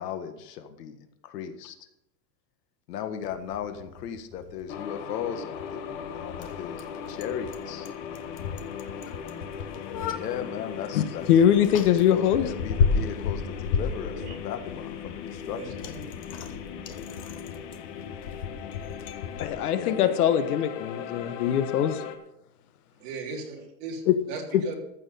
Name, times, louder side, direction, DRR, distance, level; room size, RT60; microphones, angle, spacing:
voice 1, 0.0-1.8 2.9-7.9 10.1-11.2 12.1-15.6 19.7-20.1, left 8 dB, 85° left, 8 dB, 1.7 m, -36 dB
Bicycle, 3.2-19.5, left 5 dB, 25° left, 0.4 m, -34 dB
sound 1, 4.7-22.2, left 8 dB, 50° left, 1.3 m, -39 dB
voice 2, 10.9-12.5 19.4-22.0 24.1-24.2 24.5-24.6, left 9 dB, 70° left, 11 dB, 1.3 m, -22 dB
voice 3, 15.4-16.0 23.0-24.7, right 4 dB, 45° right, -1 dB, 3.4 m, -38 dB
14.0 x 6.3 x 6.8 m, 0.84 s
supercardioid pair, 175°, 47 cm